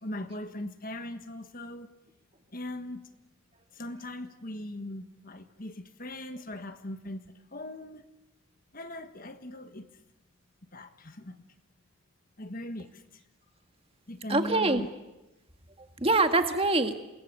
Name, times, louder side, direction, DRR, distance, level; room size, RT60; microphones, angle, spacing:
voice 1, 0.0-1.9 2.5-3.1 3.7-7.2 7.5-8.0 8.7-9.9 10.7-11.4 12.4-13.0 14.1-14.9, left 1 dB, 45° left, 1.5 m, -39 dB
voice 2, 14.3-14.8 15.8-17.0, right 2 dB, 25° right, 1.8 m, -25 dB
27.5 x 21.5 x 8.7 m
head